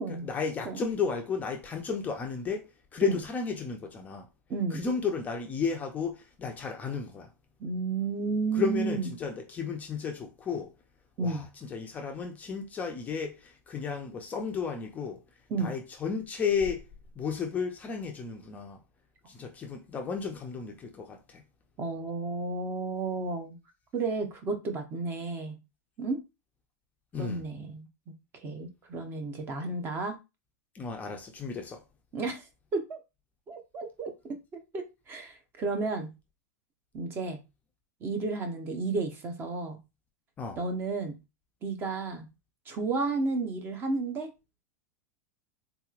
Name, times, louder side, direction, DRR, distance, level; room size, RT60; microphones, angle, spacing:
voice 1, 0.2-2.7 2.9-4.3 4.7-7.3 8.5-10.7 11.2-15.2 15.6-16.8 17.2-18.8 19.3-21.4 27.1-27.4 30.7-31.8 40.4-40.6, left 6 dB, 15° left, 0.5 m, -33 dB
voice 2, 4.5-4.8 7.6-9.1 11.2-11.5 15.5-15.7 21.8-23.5 23.9-25.6 26.0-26.2 27.2-27.9 28.3-30.2 32.1-32.5 32.7-33.0 33.5-34.4 34.7-36.1 36.9-37.4 38.0-39.8 40.6-41.1 41.6-42.3 42.7-44.3, right 3 dB, 25° right, 0.7 m, -32 dB
3.7 x 2.9 x 2.4 m
supercardioid pair, 150°, 9 cm